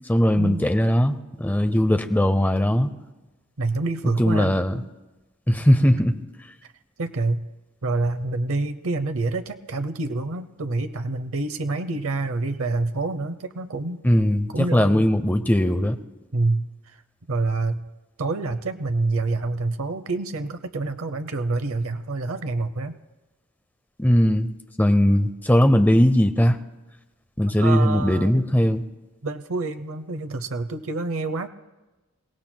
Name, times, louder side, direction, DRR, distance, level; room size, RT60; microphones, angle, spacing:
voice 1, 0.1-2.9 4.2-4.8 5.5-6.2 14.0-16.0 24.0-24.5 24.8-26.6 27.4-28.8, equal, 10° left, 9 dB, 0.6 m, -19 dB
voice 2, 3.6-4.5 7.0-7.4 7.8-14.0 14.5-15.1 16.3-17.0 17.3-17.8 18.2-23.0 27.6-28.4 29.2-31.5, right 3 dB, 70° right, 10 dB, 0.8 m, -27 dB
28.5 x 17.0 x 2.2 m, 1.2 s
head